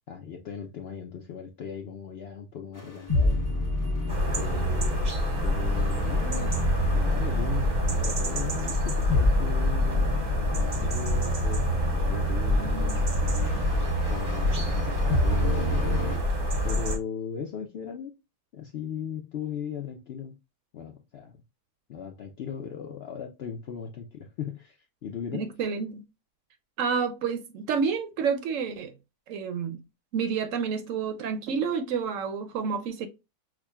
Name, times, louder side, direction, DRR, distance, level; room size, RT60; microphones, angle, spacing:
voice 1, 0.1-3.4 4.3-6.5 6.9-10.1 10.8-13.2 13.7-16.0 16.6-18.2 18.5-20.4 20.7-21.4 21.9-25.5, left 7 dB, 65° left, 0.6 m, -38 dB
sound 1, 2.7-16.2, equal, 15° left, 0.7 m, -29 dB
sound 2, 4.1-17.0, left 1 dB, 40° right, 0.8 m, -27 dB
voice 2, 25.3-26.0 26.8-28.9 29.3-29.8 30.1-33.1, right 6 dB, 70° right, 0.8 m, -29 dB
5.9 x 2.2 x 2.2 m
omnidirectional pair, 1.5 m